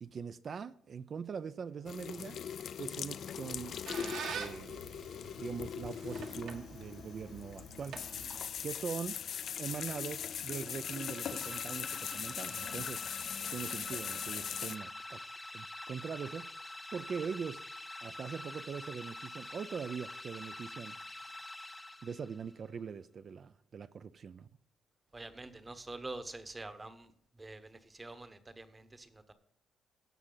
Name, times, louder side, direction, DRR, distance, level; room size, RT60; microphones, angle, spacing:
voice 1, 0.0-2.4 2.8-4.8 5.4-8.0 8.6-9.2 9.6-13.0 13.5-15.2 15.5-16.5 16.9-17.6 18.0-21.0 22.0-24.5, right 6 dB, 45° right, 0.4 m, -42 dB
sound 1, 1.9-14.8, left 8 dB, 60° left, 0.4 m, -40 dB
Squeak, 3.4-8.8, right 6 dB, 75° right, 1.8 m, -46 dB
sound 2, 10.7-22.5, left 2 dB, 15° left, 0.6 m, -46 dB
voice 2, 25.1-29.3, right 2 dB, 20° right, 1.0 m, -46 dB
16.0 x 6.0 x 3.9 m
cardioid pair, 120°, 0 cm